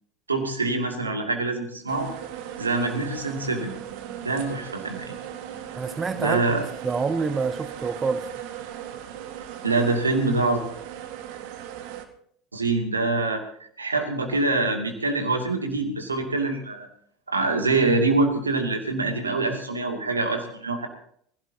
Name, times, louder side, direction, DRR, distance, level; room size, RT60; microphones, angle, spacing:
voice 1, 0.3-2.1 2.6-3.7 4.2-5.1 6.1-6.6 9.6-10.6 12.5-13.4 13.8-16.9 17.3-20.9, right 3 dB, 90° right, 3 dB, 2.5 m, -25 dB
sound 1, 1.9-12.1, right 10 dB, 60° right, 1.8 m, -38 dB
voice 2, 5.7-6.4 6.8-8.2, right 4 dB, 25° right, 11 dB, 1.0 m, -27 dB
23.5 x 16.5 x 2.9 m, 0.64 s
figure-of-eight pair, 70°, 0 cm